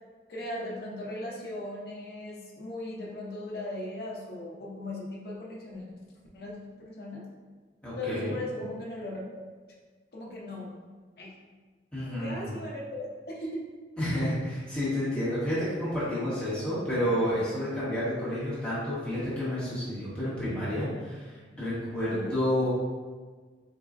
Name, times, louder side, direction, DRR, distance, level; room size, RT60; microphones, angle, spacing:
voice 1, 0.3-5.9 6.3-7.2 8.0-9.4 10.1-10.8 11.2-11.3 12.0-13.7 22.0-22.3, left 1 dB, 55° left, -4 dB, 0.6 m, -38 dB
voice 2, 7.8-8.3 11.9-12.5 14.0-22.7, left 1 dB, 5° left, -12 dB, 1.1 m, -30 dB
4.1 x 2.3 x 2.4 m, 1.4 s
head